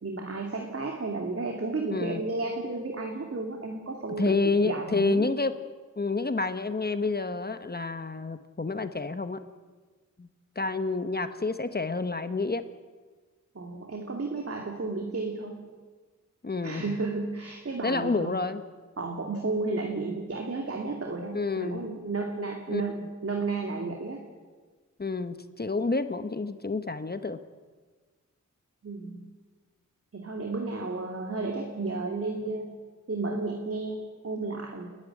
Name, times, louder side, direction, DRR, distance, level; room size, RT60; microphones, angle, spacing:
voice 1, 0.0-5.3 13.5-15.7 16.6-18.4 19.0-24.2 28.8-29.3 30.1-32.8 33.1-34.9, right 3 dB, 50° right, 2 dB, 2.5 m, -33 dB
voice 2, 1.9-2.2 4.2-5.5 6.0-9.4 10.2-10.3 10.6-12.6 16.4-17.0 17.8-18.6 21.3-21.9 22.7-23.1 25.0-27.4, left 3 dB, 30° left, 10 dB, 1.1 m, -29 dB
29.5 x 11.0 x 9.9 m, 1.4 s
wide cardioid pair, 100°, 31 cm